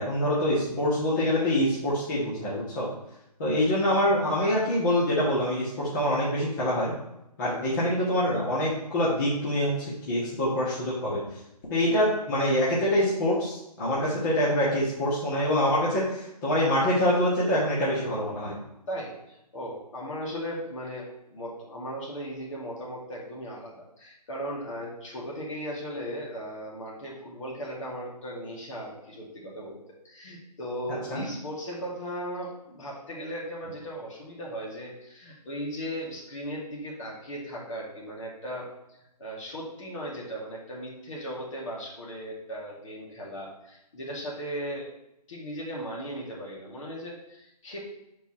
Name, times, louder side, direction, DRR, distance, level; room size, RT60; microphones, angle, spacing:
voice 1, 0.0-2.9 3.4-6.9 7.4-11.2 11.7-18.6 31.1-31.3, left 1 dB, 30° left, -8 dB, 1.8 m, -25 dB
voice 2, 7.4-7.7 14.0-14.2 18.9-29.8 30.0-44.9 45.3-47.8, equal, 50° left, -4 dB, 2.5 m, -37 dB
7.1 x 4.6 x 4.4 m, 0.85 s
figure-of-eight pair, 145°, 21 cm